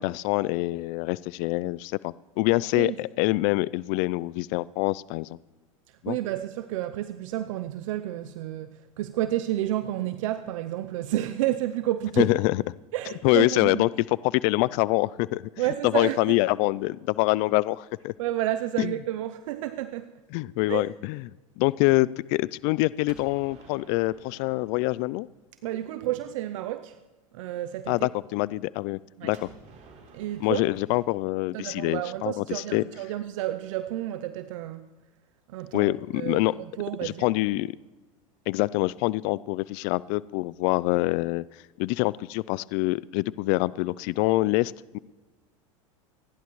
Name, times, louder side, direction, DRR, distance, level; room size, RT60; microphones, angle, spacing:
voice 1, 0.0-5.4 6.0-6.2 12.2-12.6 13.2-13.9 14.2-15.5 15.8-18.1 18.8-18.9 20.3-21.2 21.6-25.3 27.9-29.5 30.4-32.8 35.7-36.5 37.0-37.7 38.5-41.4 41.8-45.0, left 21 dB, 55° left, 0.4 m, -25 dB
voice 2, 6.1-12.3 12.9-13.8 15.6-16.4 18.2-20.1 20.7-20.9 25.6-27.0 27.3-28.1 29.2-29.3 30.1-30.7 31.5-34.9 35.5-37.3, right 14 dB, 70° right, 0.6 m, -30 dB
Gunshot gunfire, 23.0-25.9 29.3-33.1, right 4 dB, 40° right, 3.3 m, -53 dB
28.0 x 10.5 x 3.1 m
hypercardioid pair, 100°, 17 cm